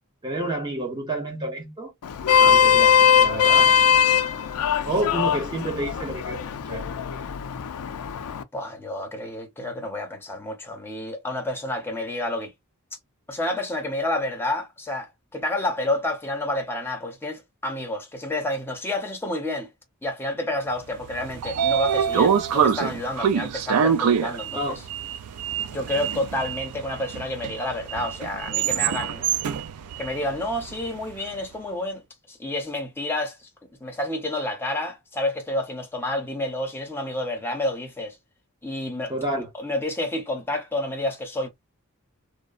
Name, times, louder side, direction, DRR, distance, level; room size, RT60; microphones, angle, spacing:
voice 1, 0.2-1.9 2.4-3.7 4.8-6.9 24.5-24.8 39.1-39.5, right 1 dB, 20° right, 0.8 m, -29 dB
Vehicle horn car horn honking, 2.0-8.4, left 8 dB, 80° left, 0.4 m, -20 dB
voice 2, 2.2-2.6 8.5-12.5 13.3-19.7 20.0-24.8 25.7-29.2 30.0-32.0 32.3-33.5 33.8-38.2 38.6-41.5, left 1 dB, 10° left, 0.7 m, -29 dB
Sliding door, 21.0-31.1, right 7 dB, 85° right, 0.4 m, -25 dB
2.8 x 2.0 x 2.3 m
head